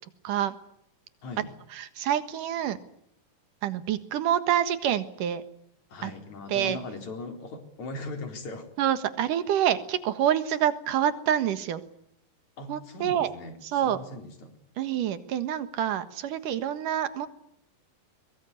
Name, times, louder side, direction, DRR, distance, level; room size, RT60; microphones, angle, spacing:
voice 1, 0.2-0.6 1.8-2.8 3.6-5.4 6.0-6.1 6.5-6.8 8.8-11.8 12.7-13.3 13.6-14.0 14.8-17.3, right 10 dB, 75° right, 12 dB, 3.1 m, -27 dB
voice 2, 1.2-1.6 5.9-8.7 12.6-14.6, left 2 dB, 60° left, 5 dB, 5.3 m, -39 dB
23.5 x 22.0 x 9.7 m, 0.72 s
omnidirectional pair, 3.8 m